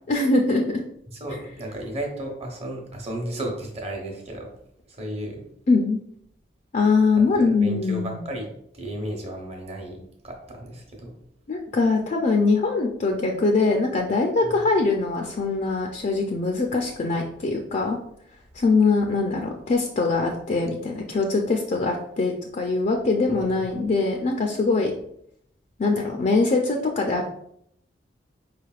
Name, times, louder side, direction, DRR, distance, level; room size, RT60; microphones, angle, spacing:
voice 1, 0.1-0.6 5.7-6.0 6.7-8.2 11.5-18.0 18.5-24.9 25.8-27.3, left 3 dB, 45° left, 2 dB, 0.4 m, -22 dB
voice 2, 1.1-4.5 4.9-5.4 7.2-8.5 8.7-10.0 10.2-11.1 14.4-14.7 23.3-23.5, right 1 dB, 35° right, 1 dB, 0.9 m, -34 dB
4.9 x 3.3 x 2.3 m, 0.72 s
head